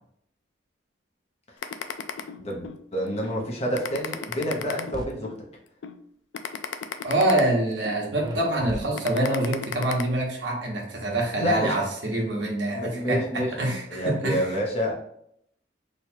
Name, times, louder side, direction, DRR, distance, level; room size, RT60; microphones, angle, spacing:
sound 1, 1.6-2.8 3.2-3.4 3.7-5.4 5.8-6.0 6.3-8.0 8.4-8.6 9.0-10.0, left 8 dB, 75° left, 0.3 m, -34 dB
voice 1, 2.4-5.3 11.4-11.7 12.7-13.5 13.9-14.9, equal, 35° left, -2 dB, 0.9 m, -28 dB
sound 2, 4.5-5.1 8.2-9.4, right 1 dB, 25° right, 0.3 m, -37 dB
voice 2, 7.0-14.5, right 1 dB, 80° right, -1 dB, 1.0 m, -25 dB
3.1 x 2.3 x 4.3 m, 0.70 s
head